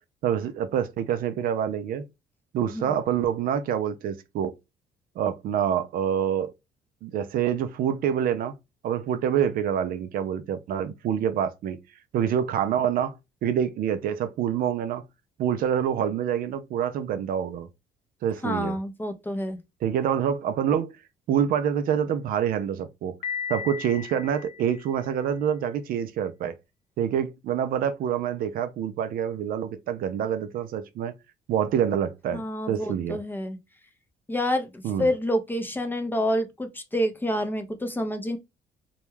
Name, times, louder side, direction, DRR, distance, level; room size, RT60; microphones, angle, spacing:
voice 1, 0.2-2.1 2.5-4.5 5.2-6.5 7.0-8.5 8.8-11.8 12.1-13.2 13.4-15.0 15.4-17.7 18.2-18.8 19.8-21.0 21.3-23.2 23.5-26.6 27.0-31.1 31.5-33.2 34.8-35.1, right 9 dB, 60° right, 0.4 m, -26 dB
voice 2, 18.4-19.6 32.3-33.6 34.3-38.4, equal, 10° left, 0.5 m, -28 dB
Piano, 23.2-25.2, left 7 dB, 75° left, 0.7 m, -36 dB
2.2 x 2.1 x 3.1 m
cardioid pair, 110°, 17 cm